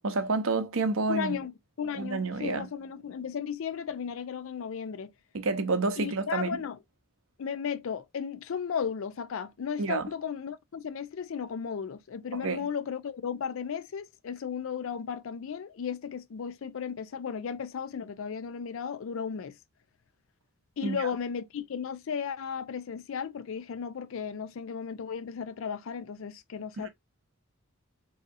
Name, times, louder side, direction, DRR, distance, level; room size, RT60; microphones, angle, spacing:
voice 1, 0.0-1.4 1.9-2.7 5.3-6.6 9.8-10.1 12.4-12.6 20.8-21.0 26.8-26.9, right 3 dB, 65° right, 0.7 m, -29 dB
voice 2, 1.1-1.5 1.8-5.1 6.0-6.8 7.4-19.6 20.8-26.9, left 7 dB, 65° left, 0.4 m, -35 dB
3.9 x 2.8 x 2.4 m
head